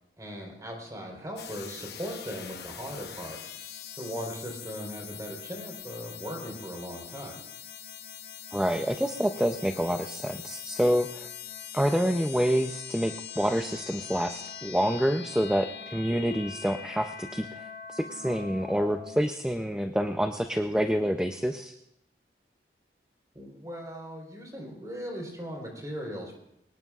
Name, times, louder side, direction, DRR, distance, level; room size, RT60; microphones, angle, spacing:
voice 1, 0.2-3.5 4.0-7.3 23.3-26.3, equal, 20° right, 0 dB, 4.0 m, -38 dB
sound 1, 1.4-19.2, left 8 dB, 60° left, 1.0 m, -43 dB
voice 2, 8.5-11.3 11.7-21.8, equal, 5° right, 6 dB, 0.5 m, -27 dB
24.0 x 18.5 x 2.4 m, 0.79 s
head